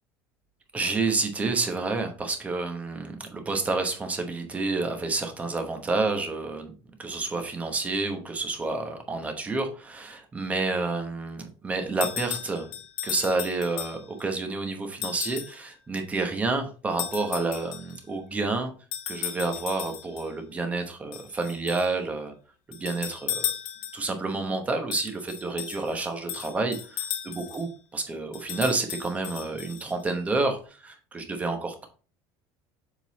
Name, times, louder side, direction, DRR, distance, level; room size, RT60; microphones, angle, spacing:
voice 1, 0.7-6.7 7.0-12.7 13.0-18.7 19.1-22.3 22.7-23.5 23.9-31.9, right 3 dB, 15° right, 5 dB, 1.0 m, -29 dB
sound 1, 12.0-14.2 15.0-15.6 17.0-18.0 18.9-20.3 21.1-21.9 22.7-24.2 24.9-27.7 28.3-30.1, left 11 dB, 60° left, 1.0 m, -35 dB
7.5 x 3.8 x 4.0 m, 0.37 s
cardioid pair, 170°, 10 cm